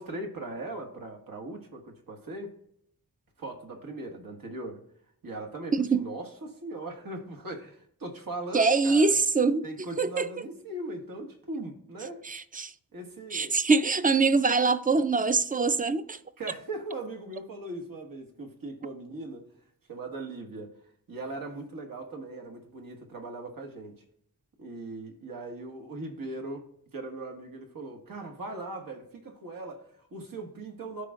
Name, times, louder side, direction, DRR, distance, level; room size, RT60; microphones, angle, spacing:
voice 1, 0.0-2.5 3.4-4.8 5.2-9.2 9.6-12.2 12.9-13.5 16.4-19.5 19.9-20.7 21.1-23.9 24.6-26.6 26.9-31.1, right 2 dB, 75° right, 1.6 m, -39 dB
voice 2, 5.7-6.0 8.5-9.6 10.0-10.3 12.3-12.7 13.3-16.2, right 4 dB, 25° right, 0.4 m, -24 dB
13.5 x 5.0 x 2.4 m
wide cardioid pair, 95°, 34 cm